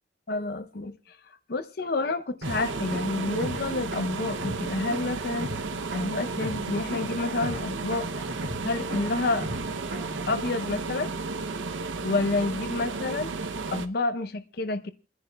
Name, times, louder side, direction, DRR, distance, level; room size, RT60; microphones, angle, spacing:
voice 1, 0.3-1.2 1.5-5.5 5.9-8.1 8.6-9.5 10.3-11.1 12.0-13.3 13.7-14.9, left 2 dB, 55° left, 9 dB, 0.6 m, -29 dB
sound 1, 2.4-10.4, equal, 70° right, 2.5 m, -38 dB
sound 2, 2.4-13.9, right 3 dB, 85° right, 0.7 m, -33 dB
29.5 x 10.5 x 2.2 m, 0.34 s
head